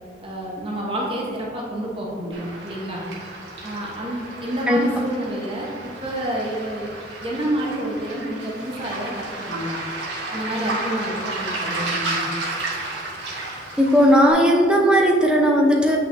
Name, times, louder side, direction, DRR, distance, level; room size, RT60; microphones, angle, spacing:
voice 1, 0.2-3.1 3.6-5.7 6.0-6.9 7.2-9.8 10.3-12.3, right 1 dB, 30° right, -3 dB, 1.0 m, -29 dB
Waves surf, 2.3-14.3, right 2 dB, 75° right, 1.6 m, -32 dB
voice 2, 13.8-16.0, equal, 5° right, 0 dB, 0.6 m, -16 dB
8.3 x 5.7 x 2.6 m, 2.1 s
head